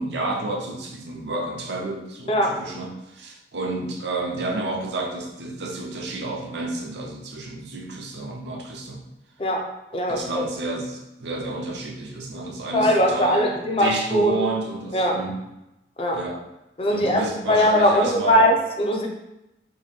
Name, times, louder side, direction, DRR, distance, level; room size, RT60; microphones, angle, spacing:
voice 1, 0.0-9.0 10.1-15.4 16.1-16.4 16.9-18.4, right 2 dB, 75° right, 0 dB, 0.6 m, -30 dB
voice 2, 9.9-10.4 12.7-14.5 14.9-15.2 16.0-16.2 16.8-17.2 17.5-19.1, equal, 30° left, 1 dB, 0.5 m, -20 dB
2.9 x 2.6 x 4.3 m, 0.94 s
head